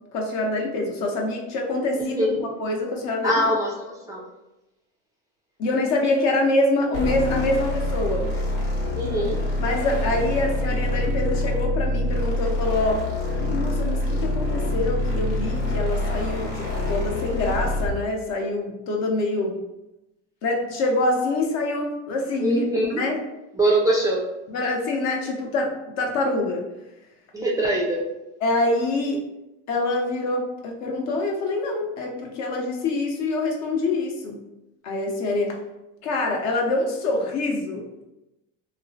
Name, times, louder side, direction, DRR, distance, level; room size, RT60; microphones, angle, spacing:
voice 1, 0.1-2.3 2.6-3.4 5.6-8.3 9.6-13.0 13.3-19.5 20.4-23.2 24.5-26.7 28.4-29.2 29.7-34.4 34.8-35.6 36.0-38.0, left 2 dB, 55° left, 1 dB, 0.7 m, -25 dB
voice 2, 2.0-2.4 3.2-4.2 9.0-9.4 22.4-23.0 23.6-24.3 27.3-28.1, right 1 dB, 10° right, -4 dB, 0.3 m, -23 dB
sound 1, 6.9-18.0, left 1 dB, 85° left, 0.9 m, -26 dB
2.9 x 2.0 x 2.6 m, 0.96 s
supercardioid pair, 105°, 34 cm